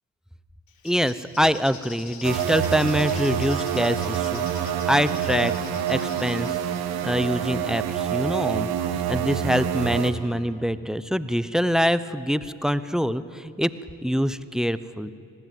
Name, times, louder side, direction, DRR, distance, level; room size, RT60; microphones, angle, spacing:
Bird, 0.7-7.6, left 6 dB, 70° left, 2.7 m, -46 dB
voice 1, 0.8-5.5 5.9-6.5 6.8-8.7 9.1-13.7 14.0-15.1, equal, ahead, 15 dB, 0.9 m, -25 dB
sound 1, 2.2-10.1, right 9 dB, 85° right, 1.3 m, -27 dB
20.5 x 15.5 x 9.2 m, 2.5 s
supercardioid pair, 55°, 37 cm